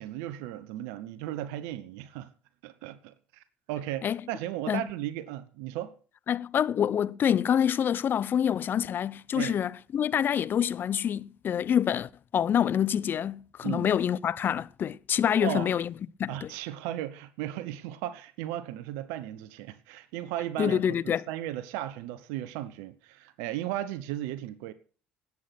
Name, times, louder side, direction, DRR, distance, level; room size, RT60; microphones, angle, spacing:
voice 1, 0.0-2.3 2.6-5.9 9.3-9.6 13.6-13.9 15.4-15.7 16.3-24.7, right 13 dB, 75° right, 1.1 m, -36 dB
voice 2, 6.3-15.9 16.2-16.5 20.6-21.2, left 9 dB, 50° left, 0.6 m, -26 dB
19.5 x 8.5 x 6.0 m
hypercardioid pair, 65°, 5 cm